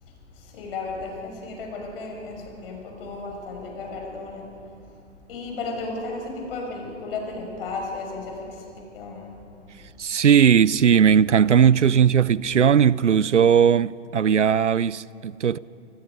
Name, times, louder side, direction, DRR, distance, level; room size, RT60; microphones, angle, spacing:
voice 1, 0.0-4.4 5.3-8.6 8.9-9.4, left 3 dB, 50° left, 6.8 m, -34 dB
voice 2, 10.0-15.6, right 8 dB, 80° right, 0.6 m, -18 dB
28.0 x 25.5 x 5.3 m
figure-of-eight pair, 110°, 35 cm